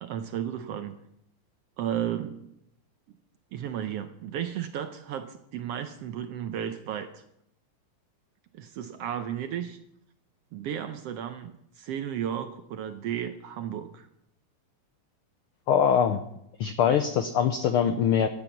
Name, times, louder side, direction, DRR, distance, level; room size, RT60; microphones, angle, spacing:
voice 1, 0.0-0.9 1.8-2.5 3.5-7.2 8.5-9.8 10.5-14.1, right 10 dB, 75° right, 9 dB, 1.5 m, -34 dB
voice 2, 15.7-16.2 16.6-18.3, left 8 dB, 90° left, 9 dB, 1.2 m, -23 dB
14.5 x 9.0 x 7.1 m, 0.78 s
omnidirectional pair, 3.4 m